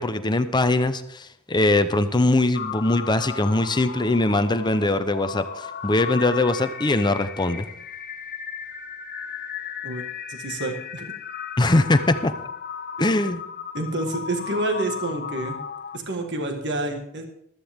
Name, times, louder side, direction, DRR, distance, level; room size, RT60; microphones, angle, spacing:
voice 1, 0.0-7.7 11.6-12.3 13.0-13.4, left 2 dB, 20° left, 10 dB, 0.7 m, -21 dB
sound 1, 2.5-16.0, left 7 dB, 50° left, 1.0 m, -35 dB
voice 2, 9.8-11.1 13.7-15.6 15.9-17.2, right 2 dB, 55° right, 4 dB, 1.7 m, -28 dB
15.0 x 13.5 x 3.6 m, 0.71 s
head